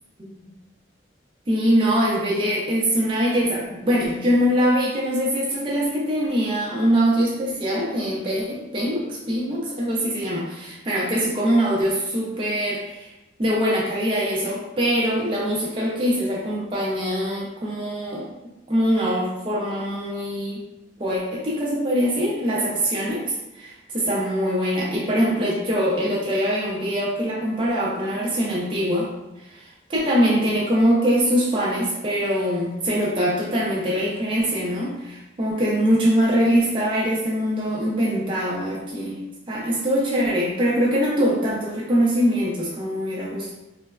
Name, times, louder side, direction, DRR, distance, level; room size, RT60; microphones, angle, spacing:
voice 1, 1.5-13.1 13.4-18.3 18.7-20.6 21.0-29.1 29.4-39.2 39.5-43.5, equal, 30° right, -5 dB, 0.5 m, -23 dB
3.1 x 2.1 x 2.3 m, 0.95 s
head